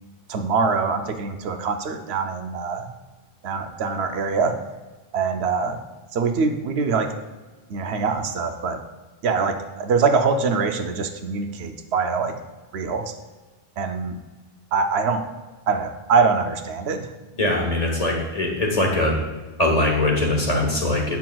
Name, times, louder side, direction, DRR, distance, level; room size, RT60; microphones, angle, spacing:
voice 1, 0.3-2.9 3.4-4.6 5.1-5.8 6.1-7.2 7.7-8.8 9.2-12.3 12.7-13.1 13.8-14.2 14.7-15.2 15.7-17.1, right 5 dB, 90° right, 6 dB, 0.9 m, -23 dB
voice 2, 17.4-19.2 19.6-21.2, left 1 dB, 40° left, -1 dB, 1.2 m, -21 dB
7.5 x 5.8 x 2.3 m, 1.3 s
omnidirectional pair, 1.0 m